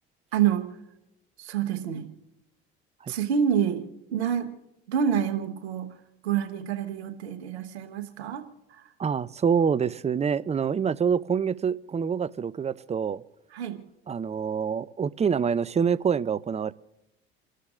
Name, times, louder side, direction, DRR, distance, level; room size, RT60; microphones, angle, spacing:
voice 1, 0.3-0.6 1.4-2.1 3.1-3.8 4.1-4.5 4.9-5.9 6.2-8.4 8.7-8.9 13.5-13.8, right 8 dB, 85° right, 1.3 m, -27 dB
voice 2, 9.0-13.2 14.1-16.7, right 6 dB, 20° right, 0.5 m, -26 dB
29.0 x 13.0 x 2.5 m
hypercardioid pair, 65°, 32 cm